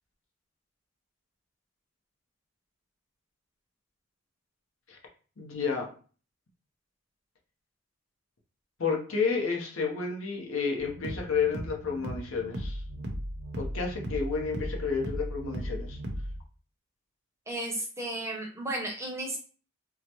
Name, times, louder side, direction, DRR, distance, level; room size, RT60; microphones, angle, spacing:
voice 1, 5.4-5.9 8.8-12.8 13.6-16.0, left 5 dB, 65° left, 1 dB, 0.9 m, -31 dB
sound 1, 10.8-16.4, equal, 50° right, 0.6 m, -37 dB
voice 2, 17.5-19.4, right 1 dB, 15° right, 0 dB, 0.6 m, -34 dB
3.8 x 2.1 x 2.9 m, 0.40 s
head